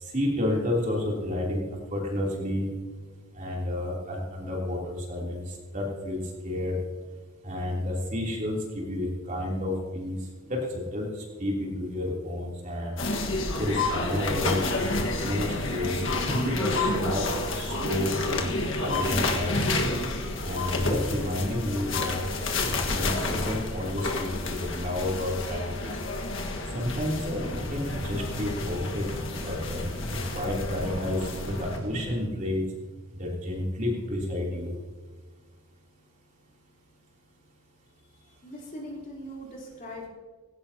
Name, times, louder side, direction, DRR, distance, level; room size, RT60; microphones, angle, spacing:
voice 1, 0.0-1.6 1.9-2.7 3.3-6.8 7.4-10.2 10.5-13.0 13.6-14.7 15.2-17.3 17.5-18.5 18.8-19.6 20.4-22.2 22.6-25.7 26.7-27.4 27.7-29.1 29.4-29.8 30.1-32.6 33.2-34.7, left 1 dB, 35° right, -2 dB, 3.3 m, -30 dB
sound 1, 13.0-31.8, left 2 dB, 60° left, 1.7 m, -30 dB
sound 2, 27.1-32.2, right 1 dB, 90° right, 4.8 m, -38 dB
voice 2, 38.4-40.1, equal, 40° left, -3 dB, 4.1 m, -40 dB
18.5 x 17.0 x 2.9 m, 1.4 s
head